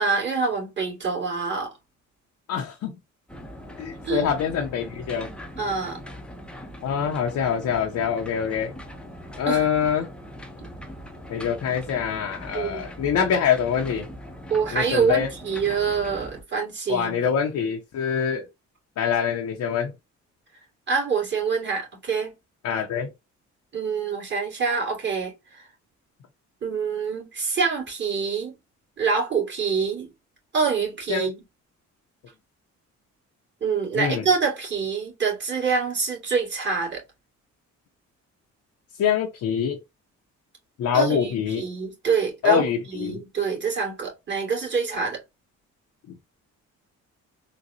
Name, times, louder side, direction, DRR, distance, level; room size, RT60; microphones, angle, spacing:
voice 1, 0.0-1.7 4.1-4.3 5.6-6.0 9.5-9.6 12.5-12.8 14.5-17.2 20.9-22.3 23.7-25.6 26.6-28.5 29.0-30.1 30.5-31.4 33.6-37.0 40.9-45.2, right 5 dB, 40° right, 2.2 m, -26 dB
voice 2, 2.5-2.9 3.8-5.3 6.8-8.7 9.4-10.1 11.3-14.1 14.7-15.3 16.9-18.5 19.0-19.9 22.6-23.1 31.1-31.3 33.9-34.2 39.0-39.8 40.8-41.6 42.4-43.2, left 7 dB, 70° left, 0.7 m, -24 dB
sound 1, 3.3-16.4, equal, 5° left, 0.6 m, -41 dB
3.9 x 2.2 x 2.7 m
cardioid pair, 90°, 30 cm